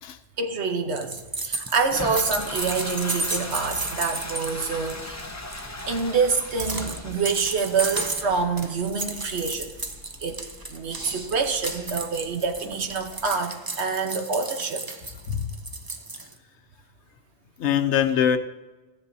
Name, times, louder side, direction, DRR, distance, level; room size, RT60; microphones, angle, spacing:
voice 1, 0.4-5.3 5.9-9.7 10.2-10.4 10.7-14.8, right 5 dB, 75° right, 1.3 m, -26 dB
sound 1, 0.9-4.9 5.2-5.3 5.5-16.3, right 3 dB, 25° right, 0.5 m, -33 dB
Toilet flush, 1.8-13.2, left 2 dB, 20° left, 0.6 m, -39 dB
voice 2, 17.6-18.4, left 9 dB, 85° left, 1.0 m, -22 dB
14.0 x 10.0 x 2.7 m
omnidirectional pair, 1.1 m